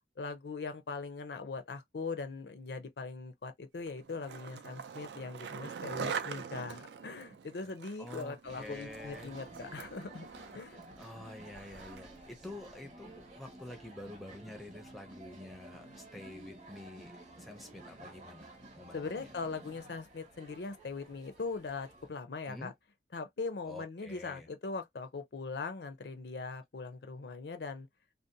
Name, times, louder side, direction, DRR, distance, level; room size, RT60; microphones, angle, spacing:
voice 1, 0.2-10.3 10.5-10.8 18.9-22.7 23.1-27.9, left 4 dB, 75° left, 0.5 m, -40 dB
Skateboard, 3.9-12.2, right 6 dB, 80° right, 0.4 m, -44 dB
voice 2, 8.0-9.3 11.0-17.1 17.4-19.3 22.5-22.7 23.7-24.5, left 1 dB, ahead, 0.5 m, -48 dB
sound 1, 8.4-22.1, right 1 dB, 40° right, 0.8 m, -52 dB
2.6 x 2.0 x 2.6 m
head